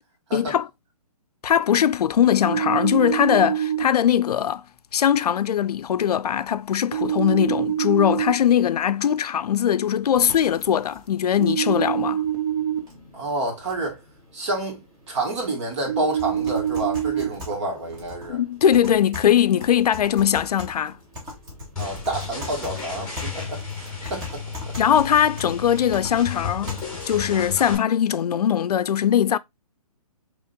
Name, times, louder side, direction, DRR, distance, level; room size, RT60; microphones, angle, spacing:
voice 1, 0.3-0.7 1.4-4.6 4.9-12.2 18.3-21.0 24.0-24.1 24.8-26.8 27.1-29.4, left 9 dB, 85° left, 0.4 m, -21 dB
sound 1, 2.5-3.8 6.9-8.3 11.4-12.8 15.9-17.3, right 10 dB, 85° right, 1.5 m, -25 dB
sound 2, 10.1-27.1, left 2 dB, 20° right, 1.6 m, -42 dB
voice 2, 13.1-14.0 14.3-18.4 21.8-24.8, right 2 dB, 50° right, 1.9 m, -29 dB
sound 3, 21.8-27.8, left 5 dB, 5° left, 1.5 m, -34 dB
5.0 x 3.0 x 2.6 m
hypercardioid pair, 155°, 19 cm